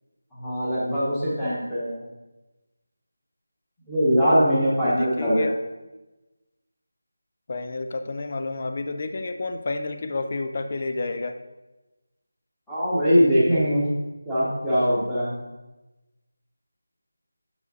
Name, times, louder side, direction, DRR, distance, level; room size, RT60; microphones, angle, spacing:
voice 1, 0.4-2.0 3.9-5.5 12.7-13.8 14.3-15.3, equal, ahead, -14 dB, 1.0 m, -21 dB
voice 2, 4.8-5.6 7.5-11.4, left 3 dB, 25° left, 7 dB, 0.3 m, -30 dB
7.1 x 6.3 x 4.0 m, 1.1 s
figure-of-eight pair, 180°, 0 cm